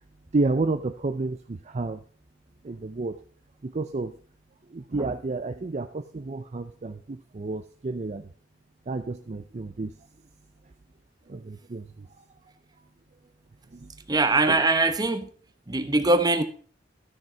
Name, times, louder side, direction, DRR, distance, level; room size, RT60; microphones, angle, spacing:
voice 1, 0.3-2.0 2.6-3.2 3.6-4.2 4.7-8.3 8.9-9.9 11.3-12.1 13.7-13.9 14.5-14.6, right 3 dB, 40° right, 0.5 m, -30 dB
voice 2, 14.1-15.3 15.7-16.4, right 2 dB, 20° right, 0.9 m, -22 dB
13.0 x 6.3 x 4.4 m
head